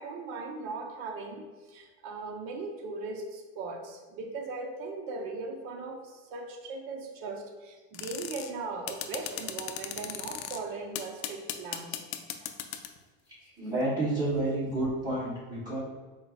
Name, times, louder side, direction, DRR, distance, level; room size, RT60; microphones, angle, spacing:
voice 1, 0.0-11.9, right 3 dB, 35° right, 3 dB, 0.5 m, -39 dB
sound 1, 7.9-8.5 8.9-10.6 11.0-13.0, left 11 dB, 80° left, 0.6 m, -36 dB
voice 2, 13.6-15.8, right 2 dB, 10° right, -9 dB, 1.4 m, -30 dB
4.4 x 2.2 x 4.0 m, 1.3 s
supercardioid pair, 155°, 42 cm